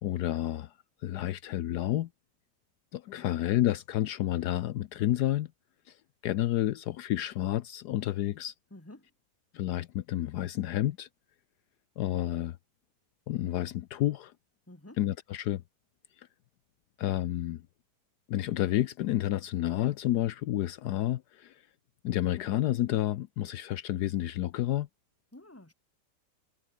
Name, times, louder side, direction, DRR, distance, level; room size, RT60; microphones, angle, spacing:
voice 1, 0.0-0.7 1.0-2.1 2.9-5.5 5.9-6.0 6.2-8.5 9.5-11.1 12.0-12.6 13.3-14.3 15.0-15.6 16.2-16.3 17.0-17.6 18.3-21.6 22.0-24.9, left 13 dB, 75° left, 1.2 m, -30 dB
voice 2, 8.7-9.1 14.7-15.0 25.3-25.7, left 1 dB, 10° left, 2.3 m, -50 dB
omnidirectional pair, 1.8 m